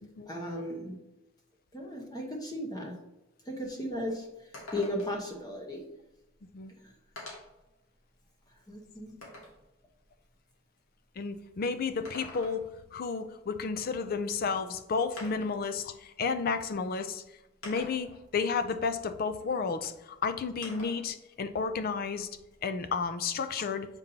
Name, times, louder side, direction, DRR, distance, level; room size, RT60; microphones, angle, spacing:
voice 1, 0.3-1.0 1.7-2.9 3.5-4.3 4.7-5.8 8.7-9.2, left 1 dB, 20° left, -1 dB, 1.0 m, -35 dB
sound 1, 4.5-5.3 6.3-6.4 7.2-7.6 8.2-9.6 11.8-12.8 14.3-14.4 15.2-15.6 16.6-16.7 17.6-18.2 20.6-21.1 21.5-22.6, left 2 dB, 80° left, 1.9 m, -46 dB
voice 2, 11.2-12.6 12.9-17.2 17.6-22.3 22.6-23.9, left 5 dB, 45° left, 10 dB, 0.4 m, -32 dB
7.3 x 5.2 x 2.8 m, 0.97 s
head